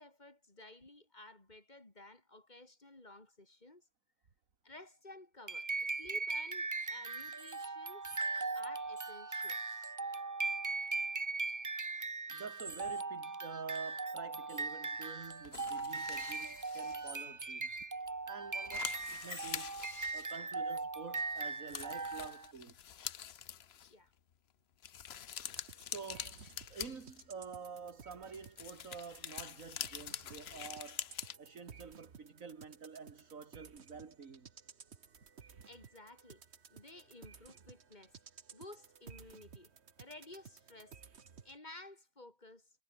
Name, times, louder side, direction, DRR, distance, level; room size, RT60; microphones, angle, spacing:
voice 1, 0.0-3.9 4.6-8.1 8.5-9.6 23.9-24.1 35.6-36.4 36.7-38.2 38.5-39.7 40.0-41.0 41.4-42.7, left 2 dB, 30° left, 3.4 m, -54 dB
sound 1, 5.5-22.5, right 3 dB, 30° right, 0.3 m, -39 dB
voice 2, 12.3-17.7 18.3-19.8 20.1-22.8 25.8-34.5, right 5 dB, 75° right, 2.4 m, -48 dB
sound 2, 15.5-17.2 17.7-17.8 18.2-18.3 18.5-20.8 21.3-21.4 21.7-23.9 24.8-27.5 28.3-31.4, left 9 dB, 55° left, 0.9 m, -45 dB
sound 3, 25.4-41.6, right 6 dB, 55° right, 1.6 m, -57 dB
omnidirectional pair, 1.4 m